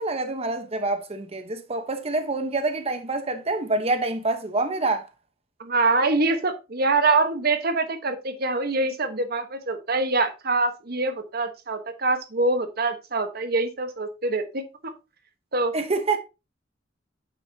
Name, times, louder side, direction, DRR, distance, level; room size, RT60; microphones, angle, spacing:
voice 1, 0.0-5.1 15.7-16.2, right 2 dB, 35° right, 1.0 m, -26 dB
voice 2, 5.6-14.9 15.5-15.7, right 3 dB, 55° right, 1.2 m, -24 dB
8.9 x 7.0 x 2.8 m
head